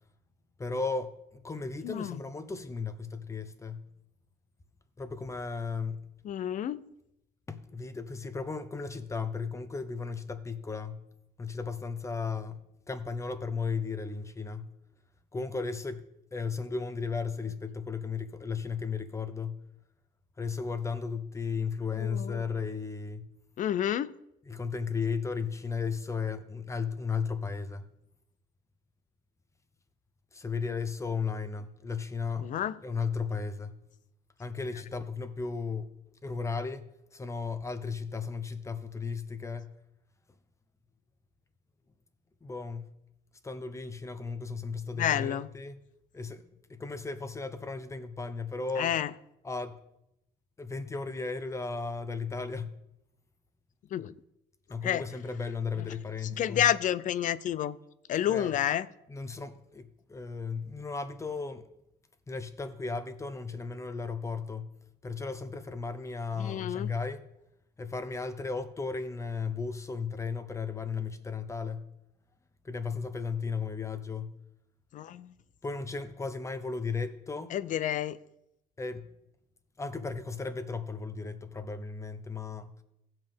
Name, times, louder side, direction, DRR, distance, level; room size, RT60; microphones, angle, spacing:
voice 1, 0.6-1.2 1.4-3.9 5.0-6.1 7.5-11.0 11.4-12.6 12.9-14.7 15.3-16.0 16.3-19.6 20.4-23.3 24.5-27.9 30.3-32.5 32.8-33.8 34.4-35.9 36.2-39.7 42.4-42.8 43.4-45.8 46.1-48.9 49.4-49.8 50.6-52.8 54.7-56.7 58.3-58.5 59.1-61.7 62.3-64.7 65.0-67.2 67.8-71.9 72.6-74.4 75.6-77.5 78.8-79.1 79.8-82.8, left 4 dB, 15° left, 0.8 m, -35 dB
voice 2, 1.8-2.2 6.2-6.9 22.0-22.6 23.6-24.1 32.4-32.8 44.9-45.5 48.8-49.1 53.9-54.1 54.8-55.1 55.8-55.9 56.2-57.8 58.1-58.9 66.4-66.9 74.9-75.3 77.5-78.2, left 10 dB, 50° left, 0.4 m, -30 dB
16.0 x 5.6 x 3.5 m
cardioid pair, 110°, 17 cm